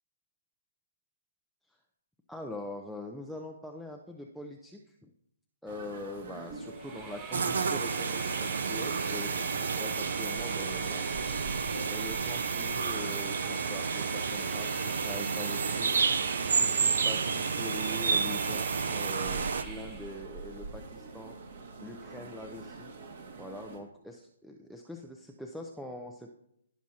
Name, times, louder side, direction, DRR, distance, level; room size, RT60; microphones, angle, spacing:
voice 1, 2.3-5.1 5.6-11.1 11.9-16.3 16.6-21.4 21.8-22.9 23.4-26.3, left 1 dB, ahead, 1 dB, 0.5 m, -43 dB
sound 1, 5.7-23.8, right 3 dB, 55° right, 2.1 m, -46 dB
Train, 6.7-20.2, right 4 dB, 20° right, 1.8 m, -41 dB
sound 2, 7.3-19.6, right 5 dB, 70° right, 0.6 m, -30 dB
17.5 x 6.1 x 2.8 m, 0.78 s
hypercardioid pair, 155°, 0 cm